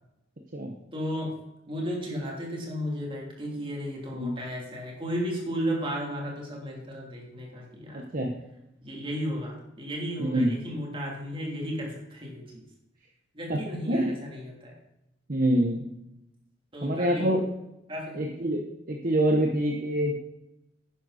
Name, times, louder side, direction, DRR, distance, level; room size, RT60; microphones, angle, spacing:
voice 1, 0.9-1.3 1.7-8.0 8.8-12.6 13.3-14.7 16.7-17.4 17.9-18.2, equal, 25° right, -2 dB, 3.2 m, -34 dB
voice 2, 7.9-8.3 10.2-10.6 13.5-13.6 13.9-14.1 15.3-15.9 16.8-17.4 18.1-20.1, right 1 dB, 45° right, 2 dB, 1.1 m, -26 dB
11.0 x 9.9 x 4.2 m, 0.88 s
head